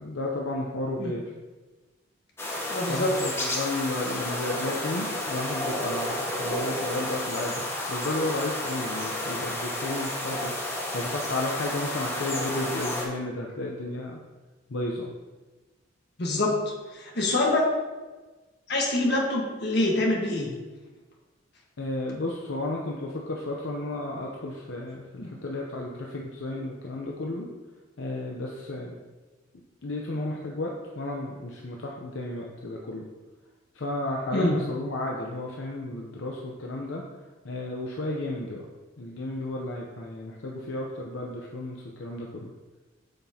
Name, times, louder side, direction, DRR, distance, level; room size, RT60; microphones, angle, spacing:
voice 1, 0.0-1.3 2.9-14.2 14.7-15.1 21.8-27.5 28.0-28.9 29.8-33.0 33.7-37.0 37.4-38.7 39.0-42.5, left 2 dB, 75° left, -2 dB, 0.8 m, -33 dB
sound 1, 2.4-13.0, left 1 dB, 15° left, 1.1 m, -31 dB
voice 2, 2.7-3.1 16.2-16.5 16.9-17.6 18.7-20.5 25.2-25.3 34.3-34.6, left 2 dB, 60° left, -1 dB, 1.5 m, -25 dB
8.6 x 6.0 x 2.9 m, 1.2 s
head